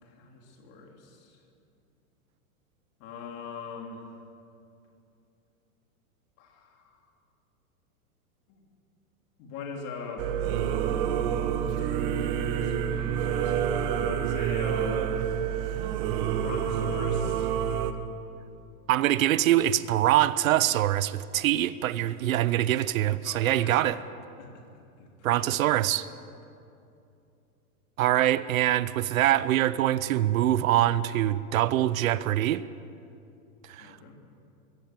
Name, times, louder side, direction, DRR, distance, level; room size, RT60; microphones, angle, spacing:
voice 1, 0.0-1.4 3.0-4.2 6.4-7.0 8.5-8.6 9.4-10.3 11.5-11.8 12.3-15.2 16.3-17.5 23.2-23.9 24.4-24.6 25.0-25.7 26.2-26.3 33.8-34.1, left 4 dB, 35° left, 1 dB, 3.3 m, -42 dB
Singing / Musical instrument, 10.2-17.9, right 8 dB, 30° right, 1.1 m, -28 dB
voice 2, 18.9-24.0 25.2-26.1 28.0-32.6 33.7-34.1, right 13 dB, 65° right, 16 dB, 0.8 m, -24 dB
22.5 x 16.5 x 7.7 m, 2.6 s
supercardioid pair, 165°, 44 cm